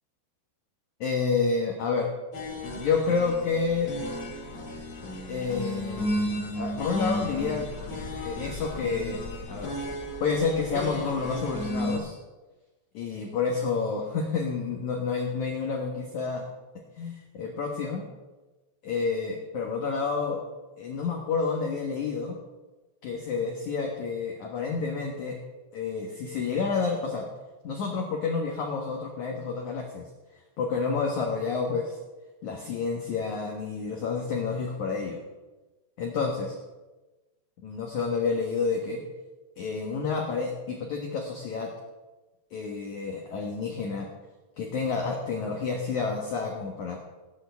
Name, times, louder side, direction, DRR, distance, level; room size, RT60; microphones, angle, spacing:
voice 1, 1.0-2.1 2.8-3.9 5.3-7.7 8.2-9.2 9.5-9.7 10.2-12.2 12.9-16.5 17.0-18.0 18.8-20.4 20.8-22.4 23.0-25.4 25.7-27.2 27.6-30.0 30.6-32.0 32.4-35.2 36.0-36.5 37.6-39.0 39.6-41.7 42.5-44.1 44.6-47.0, left 5 dB, 65° left, 0 dB, 2.0 m, -29 dB
sound 1, 2.3-12.0, left 1 dB, 40° left, 3.4 m, -34 dB
17.0 x 12.0 x 3.5 m, 1.2 s
omnidirectional pair, 5.1 m